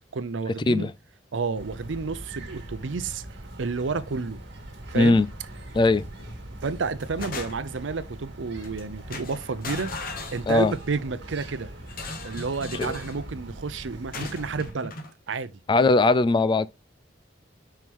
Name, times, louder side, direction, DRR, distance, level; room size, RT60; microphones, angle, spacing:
voice 1, 0.1-0.9 1.3-3.2 3.6-4.4 4.9-5.2 6.6-9.9 10.3-11.7 12.2-14.9 15.3-15.5, right 4 dB, 90° right, 0.6 m, -30 dB
sound 1, 1.5-14.7, right 1 dB, 70° right, 1.7 m, -41 dB
voice 2, 4.9-5.3 5.7-6.1 10.5-10.7 12.7-12.9 15.7-16.7, left 3 dB, 25° left, 0.3 m, -19 dB
sound 2, 5.9-6.3 6.7-7.9 8.6-8.8 9.1-10.9 11.9-13.2 14.1-15.1, left 2 dB, 50° left, 1.1 m, -38 dB
5.6 x 4.7 x 3.6 m
head